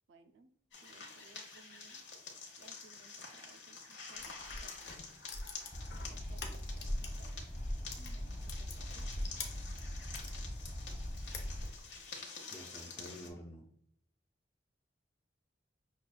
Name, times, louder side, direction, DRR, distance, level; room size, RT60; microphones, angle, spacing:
voice 1, 0.1-0.5 0.8-2.0 2.6-4.3 4.6-4.9 5.9-7.5 7.9-9.1, right 4 dB, 80° right, 7 dB, 0.4 m, -62 dB
sound 1, 0.7-13.3, left 4 dB, 80° left, 0.9 m, -49 dB
sound 2, 4.2-7.3 7.6-10.4 10.8-11.9, left 1 dB, 60° left, 0.6 m, -42 dB
sound 3, 5.7-11.7, equal, 30° left, 1.1 m, -42 dB
voice 2, 12.5-13.7, equal, 15° left, 0 dB, 0.3 m, -49 dB
6.0 x 2.3 x 2.2 m, 0.69 s
head